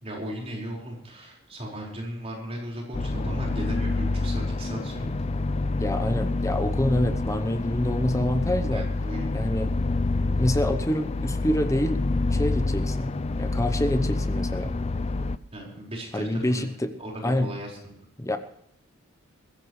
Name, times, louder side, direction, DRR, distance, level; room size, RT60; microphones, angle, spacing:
voice 1, 0.0-5.1 8.7-9.3 15.5-16.6 17.0-18.0, equal, 30° right, -2 dB, 5.0 m, -36 dB
sound 1, 2.9-15.4, left 2 dB, 30° left, 0.5 m, -27 dB
voice 2, 5.8-8.8 9.3-9.7 10.1-12.0 12.3-13.1 13.4-14.7 16.1-16.9 17.2-17.5 18.2-18.4, left 1 dB, 15° left, 9 dB, 0.8 m, -26 dB
21.0 x 16.0 x 3.2 m, 0.73 s
head